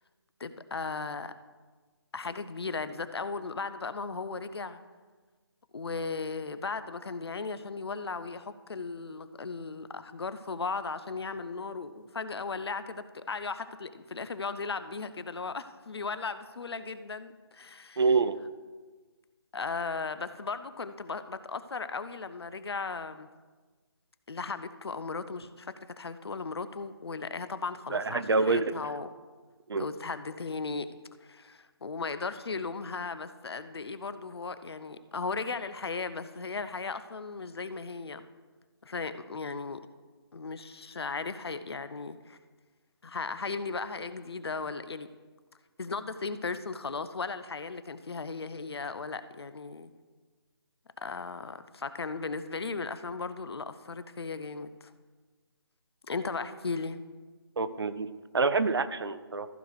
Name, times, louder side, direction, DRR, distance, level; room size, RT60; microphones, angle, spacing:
voice 1, 0.4-1.3 2.1-4.8 5.7-18.0 19.5-23.3 24.3-29.1 29.7-30.9 31.2-38.3 38.8-39.8 40.3-42.4 43.0-45.1 45.8-49.9 51.0-54.9 56.1-57.0, left 4 dB, 70° left, 12 dB, 0.6 m, -36 dB
voice 2, 18.0-18.4 27.9-28.6 29.7-29.8 57.6-58.1 58.3-59.5, right 4 dB, 65° right, 13 dB, 0.6 m, -26 dB
14.5 x 4.9 x 4.7 m, 1.4 s
figure-of-eight pair, 155°, 14 cm